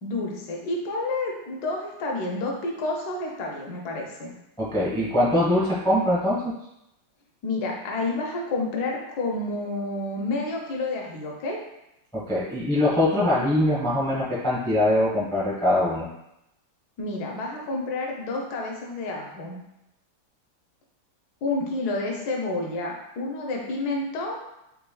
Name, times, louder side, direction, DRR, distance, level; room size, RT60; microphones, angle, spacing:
voice 1, 0.0-4.3 7.4-11.6 17.0-19.6 21.4-24.4, left 2 dB, 65° left, -1 dB, 1.0 m, -29 dB
voice 2, 4.6-6.5 12.1-16.1, left 1 dB, 5° left, -6 dB, 0.4 m, -22 dB
4.5 x 3.4 x 2.3 m, 0.85 s
omnidirectional pair, 2.3 m